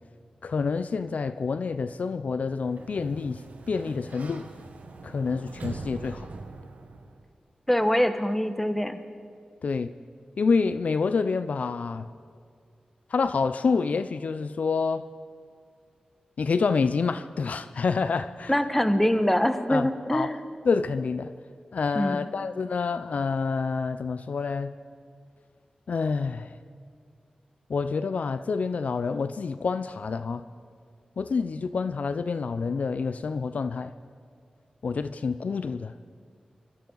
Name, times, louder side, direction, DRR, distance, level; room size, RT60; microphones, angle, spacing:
voice 1, 0.4-3.4 3.7-4.5 5.0-6.3 9.6-9.9 10.4-12.1 13.1-15.0 16.4-18.6 19.7-20.3 20.6-21.3 21.7-24.7 25.9-26.5 27.7-30.4 31.2-33.9 34.8-35.9, left 4 dB, 70° left, 0.5 m, -27 dB
Sliding door, 2.4-7.3, right 3 dB, 75° right, 1.2 m, -42 dB
voice 2, 7.7-9.0 18.5-20.4 21.9-22.2, equal, 10° left, 1.1 m, -24 dB
23.5 x 14.0 x 4.0 m
cardioid pair, 55°, 3 cm